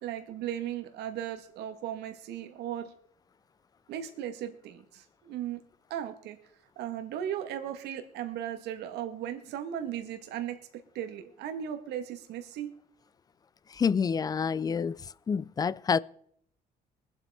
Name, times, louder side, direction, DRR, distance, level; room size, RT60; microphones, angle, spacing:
voice 1, 0.0-2.9 3.9-5.6 5.9-6.4 6.8-12.7, right 10 dB, 80° right, 1.4 m, -37 dB
voice 2, 13.7-16.0, left 6 dB, 25° left, 0.4 m, -28 dB
23.0 x 8.2 x 3.5 m
cardioid pair, 110°, 17 cm